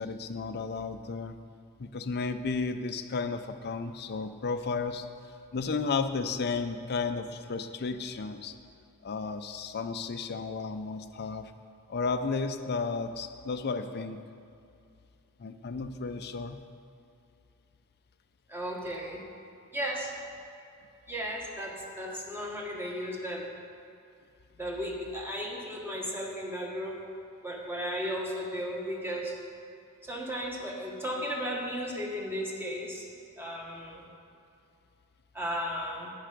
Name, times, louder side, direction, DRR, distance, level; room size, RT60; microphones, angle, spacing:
voice 1, 0.0-1.4 1.8-5.1 5.5-8.5 9.0-11.5 11.9-14.2 15.4-16.6, left 4 dB, 50° left, 9 dB, 0.6 m, -33 dB
voice 2, 18.5-19.2 19.7-20.1 21.1-23.4 24.6-27.0 27.4-29.3 30.0-33.1 33.4-34.1 35.3-36.1, equal, 10° right, -2 dB, 1.4 m, -35 dB
16.5 x 5.6 x 5.1 m, 2.6 s
head